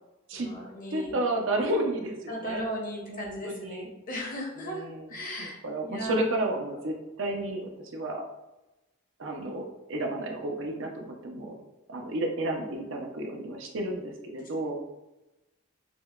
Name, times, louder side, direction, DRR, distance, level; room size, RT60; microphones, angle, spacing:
voice 1, 0.3-1.1 2.3-4.8 5.1-5.6 5.9-6.2, equal, 40° left, -1 dB, 0.9 m, -36 dB
voice 2, 0.9-2.7 3.1-3.9 4.6-8.2 9.2-11.5 11.9-14.8, right 1 dB, 60° right, 1 dB, 0.6 m, -32 dB
6.0 x 2.2 x 2.3 m, 0.98 s
head